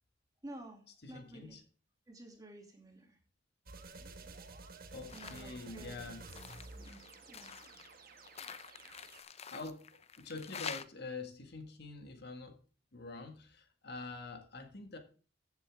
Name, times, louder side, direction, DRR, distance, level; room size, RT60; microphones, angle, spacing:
voice 1, 0.4-1.6 2.1-3.2 5.1-6.0 6.7-7.6, right 1 dB, 20° right, 2.5 m, -52 dB
voice 2, 1.0-1.6 4.9-6.2 9.5-12.6 12.9-15.0, left 3 dB, 60° left, 1.8 m, -46 dB
sound 1, 3.7-9.2, right 3 dB, 55° right, 1.3 m, -52 dB
sound 2, 5.1-5.5 5.9-10.9, left 7 dB, 35° left, 0.6 m, -47 dB
15.0 x 7.3 x 3.6 m
head